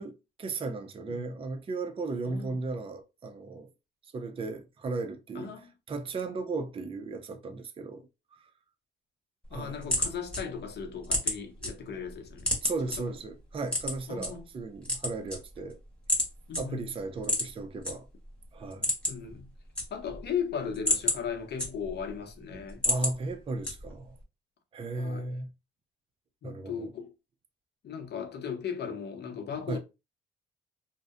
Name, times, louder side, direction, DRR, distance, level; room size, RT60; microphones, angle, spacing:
voice 1, 0.0-3.7 4.1-5.5 5.9-8.5 9.5-9.9 12.6-15.8 16.6-18.1 18.5-18.9 22.8-24.2 24.7-25.5 26.4-26.9 29.7-29.8, right 3 dB, 30° right, 0.4 m, -36 dB
voice 2, 2.2-2.6 5.3-5.7 9.5-12.5 12.9-13.1 14.1-14.5 16.5-16.9 19.1-19.5 19.9-22.8 25.0-25.3 26.4-27.1 27.8-29.8, left 7 dB, 55° left, 0.7 m, -37 dB
sound 1, 9.4-11.7 12.1-13.0 13.7-14.3 14.7-15.7 16.1-16.3 16.5-16.6 17.2-17.9 18.3-18.4 18.7-19.3 19.6-20.2 20.6-22.1 22.5-23.1 23.6-24.1, left 1 dB, 5° left, 1.3 m, -29 dB
2.6 x 2.0 x 2.4 m
cardioid pair, 90°, 20 cm